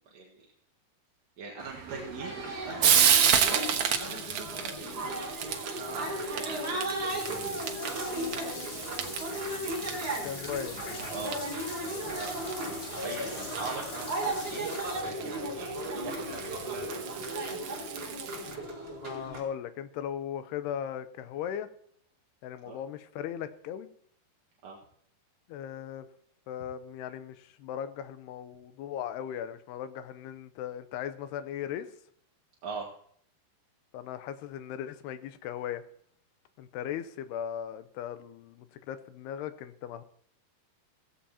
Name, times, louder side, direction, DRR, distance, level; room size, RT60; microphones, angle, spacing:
voice 1, 0.1-0.5 1.4-2.3 2.6-4.6 5.3-6.8 7.0-7.7 8.4-8.8 9.8-10.0 11.1-11.5 11.9-17.3 22.6-22.8 24.6-24.8 32.6-32.9, right 4 dB, 50° right, -2 dB, 2.3 m, -42 dB
Frying (food), 1.6-18.6, right 8 dB, 70° right, 1.7 m, -32 dB
sound 1, 1.9-19.4, right 1 dB, 35° right, 5.3 m, -36 dB
sound 2, 7.1-15.0, left 3 dB, 40° left, 3.2 m, -43 dB
voice 2, 10.2-10.8 18.9-21.7 22.4-23.9 25.5-26.1 26.5-31.9 33.9-35.8 36.6-40.0, left 9 dB, 80° left, 11 dB, 2.9 m, -38 dB
17.0 x 15.5 x 2.9 m, 0.64 s
omnidirectional pair, 4.7 m